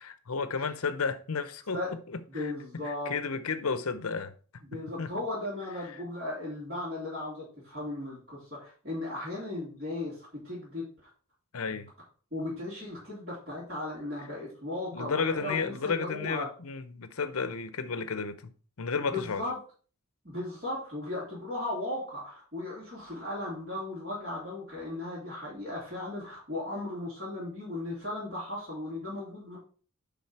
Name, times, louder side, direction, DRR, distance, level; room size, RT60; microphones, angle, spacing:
voice 1, 0.0-5.1 5.9-6.0 11.5-11.9 14.9-18.5 18.8-19.4, left 5 dB, 70° left, 0.8 m, -33 dB
voice 2, 2.3-3.1 4.6-10.8 12.3-16.5 19.1-19.6 20.2-29.6, left 2 dB, 45° right, 3.6 m, -36 dB
10.0 x 3.8 x 4.7 m
head